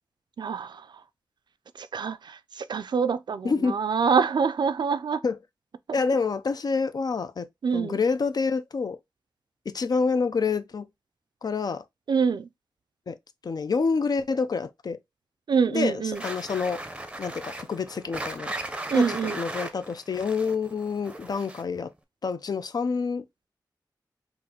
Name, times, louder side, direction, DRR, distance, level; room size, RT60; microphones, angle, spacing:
voice 1, 0.4-0.8 1.8-5.2 7.6-8.0 12.1-12.5 15.5-16.2 18.9-19.4, right 6 dB, 70° right, 0.4 m, -25 dB
voice 2, 3.4-3.8 5.2-5.4 5.9-7.5 7.7-9.0 9.7-10.9 11.4-11.8 13.1-13.2 13.4-15.0 15.7-16.8 17.2-18.5 18.9-21.9 22.2-23.2, left 4 dB, 60° left, 0.4 m, -27 dB
sound 1, 16.1-21.8, right 1 dB, 15° right, 0.6 m, -37 dB
3.9 x 2.5 x 2.8 m
wide cardioid pair, 95°, 8 cm